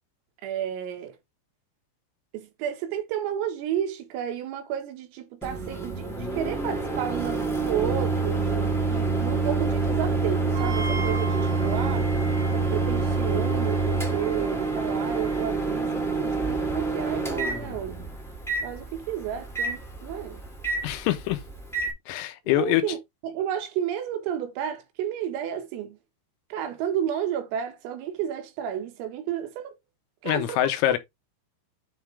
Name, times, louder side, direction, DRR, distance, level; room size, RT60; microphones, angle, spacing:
voice 1, 0.4-1.2 2.3-12.1 12.5-18.1 18.6-20.4 22.6-23.0 23.2-26.0 26.5-29.7 30.2-31.0, right 10 dB, 80° right, 4.2 m, -32 dB
Microwave oven, 5.4-21.9, right 3 dB, ahead, 0.9 m, -27 dB
Wind instrument woodwind instrument, 10.5-15.5, right 5 dB, 55° right, 2.3 m, -39 dB
voice 2, 20.8-21.4 22.1-22.8 30.3-31.0, left 14 dB, 85° left, 3.8 m, -24 dB
10.0 x 3.6 x 4.7 m
omnidirectional pair, 5.9 m